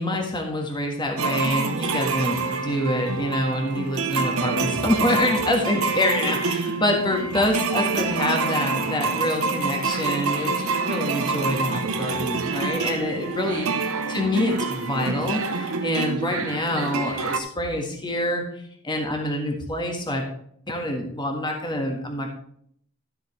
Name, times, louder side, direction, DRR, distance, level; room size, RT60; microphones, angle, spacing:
voice 1, 0.0-18.4 18.8-20.2 20.7-22.3, left 1 dB, 20° left, 1 dB, 1.7 m, -26 dB
sound 1, 1.2-17.4, right 4 dB, 80° right, 0.9 m, -27 dB
12.5 x 7.8 x 3.3 m, 0.66 s
head